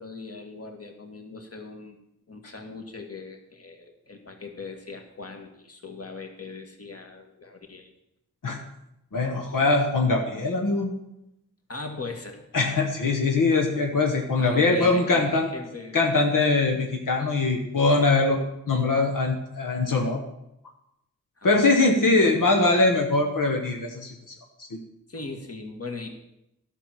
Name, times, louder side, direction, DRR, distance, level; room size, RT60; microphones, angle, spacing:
voice 1, 0.0-2.0 2.3-7.9 11.7-12.4 14.4-16.0 21.4-21.6 21.9-22.0 25.1-26.1, left 3 dB, 50° left, 4 dB, 1.9 m, -39 dB
voice 2, 9.1-10.9 12.5-15.5 15.9-18.4 18.7-20.2 21.4-24.3 24.6-24.8, left 3 dB, 85° left, 2 dB, 1.2 m, -22 dB
11.5 x 5.9 x 7.4 m, 0.85 s
cardioid pair, 50°, 32 cm